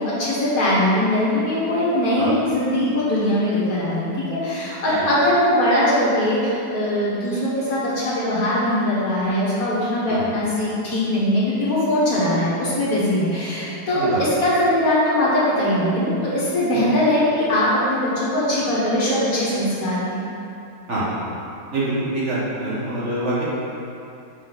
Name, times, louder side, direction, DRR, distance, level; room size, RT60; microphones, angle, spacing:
voice 1, 0.0-20.2, left 1 dB, 55° left, -8 dB, 1.8 m, -21 dB
voice 2, 21.7-23.4, right 2 dB, 45° right, -9 dB, 1.4 m, -25 dB
6.5 x 4.6 x 4.0 m, 2.7 s
omnidirectional pair, 1.9 m